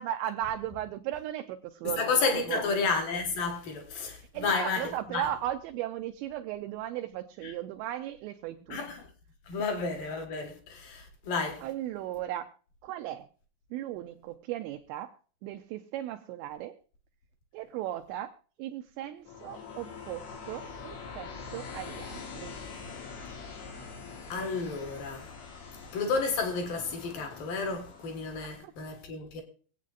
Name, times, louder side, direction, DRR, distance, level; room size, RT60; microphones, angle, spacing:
voice 1, 0.0-2.1 2.5-2.6 4.0-8.8 11.6-12.5 12.8-13.3 13.7-15.1 15.4-16.8 17.5-18.3 18.6-22.6 28.6-28.7, right 12 dB, 85° right, 2.6 m, -36 dB
voice 2, 1.8-5.3 7.4-7.5 8.7-9.1 9.5-11.6 24.3-25.3 25.9-29.4, left 4 dB, 60° left, 2.6 m, -31 dB
sound 1, 19.3-28.6, left 5 dB, 85° left, 4.8 m, -44 dB
25.0 x 8.4 x 2.4 m
omnidirectional pair, 5.7 m